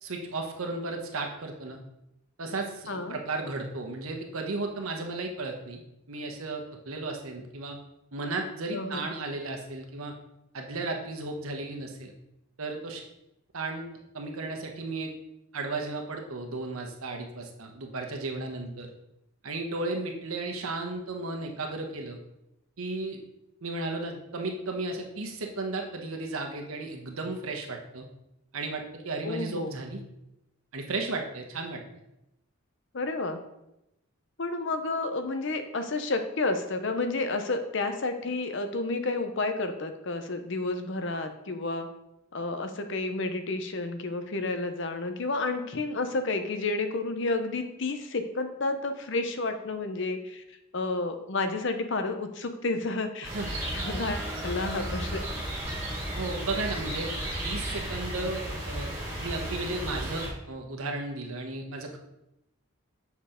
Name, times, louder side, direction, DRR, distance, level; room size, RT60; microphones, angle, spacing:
voice 1, 0.0-1.8 2.4-5.8 6.1-7.8 8.1-10.1 10.5-12.1 12.6-13.0 13.5-13.9 14.1-15.1 15.5-18.9 19.4-22.2 22.8-23.2 23.6-28.1 28.5-30.0 30.7-31.8 53.3-53.5 56.1-57.1 57.4-58.9 59.2-62.0, right 2 dB, 80° right, 2 dB, 1.1 m, -34 dB
voice 2, 2.9-3.2 8.7-9.1 29.2-29.7 32.9-33.4 34.4-41.9 42.3-50.4 50.7-53.3 53.6-55.2, left 3 dB, 55° left, 8 dB, 0.7 m, -31 dB
sound 1, 53.2-60.3, right 1 dB, 15° right, 2.1 m, -34 dB
7.1 x 4.5 x 5.1 m, 0.88 s
head